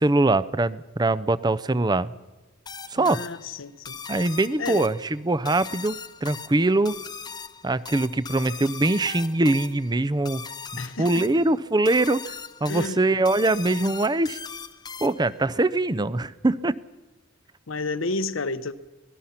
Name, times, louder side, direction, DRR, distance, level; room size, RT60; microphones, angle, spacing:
voice 1, 0.0-2.1 2.9-3.2 4.1-7.0 7.6-10.4 11.0-12.3 12.6-14.4 15.0-16.8, right 2 dB, 20° right, 0.6 m, -23 dB
sound 1, 2.7-15.4, left 6 dB, 20° left, 0.6 m, -39 dB
voice 2, 3.0-4.0 4.6-4.9 10.8-11.3 12.6-13.0 17.7-18.7, left 3 dB, 85° left, 1.0 m, -31 dB
25.0 x 18.5 x 5.8 m
head